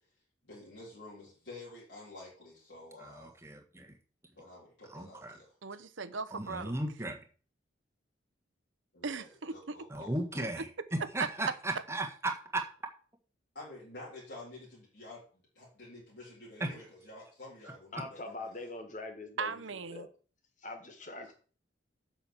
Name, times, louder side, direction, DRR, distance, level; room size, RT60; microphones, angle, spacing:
voice 1, 0.4-3.4 4.4-5.5 8.9-10.5 13.6-15.2 15.5-18.7, left 2 dB, 65° left, 3.6 m, -50 dB
voice 2, 3.0-3.9 4.9-5.4 6.3-7.2 9.9-10.7 11.1-12.6 16.6-16.7, right 2 dB, 15° right, 1.5 m, -36 dB
voice 3, 5.6-6.7 9.0-9.8 10.6-10.7 11.0-11.3 19.4-20.1, right 4 dB, 80° right, 0.9 m, -37 dB
voice 4, 17.9-19.5 19.9-20.1 20.6-21.3, left 2 dB, 40° left, 1.7 m, -42 dB
7.9 x 6.1 x 7.3 m
head